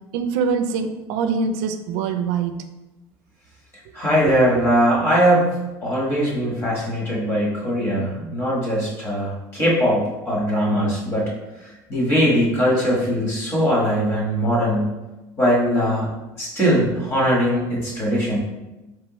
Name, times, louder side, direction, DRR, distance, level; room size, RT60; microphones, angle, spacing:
voice 1, 0.1-2.6 4.3-4.6, right 5 dB, 75° right, 8 dB, 0.4 m, -24 dB
voice 2, 3.9-11.3 11.6-14.9 15.4-16.1 16.4-18.4, equal, 30° left, -4 dB, 1.5 m, -20 dB
4.5 x 3.5 x 3.0 m, 1.0 s
cardioid pair, 150°, 9 cm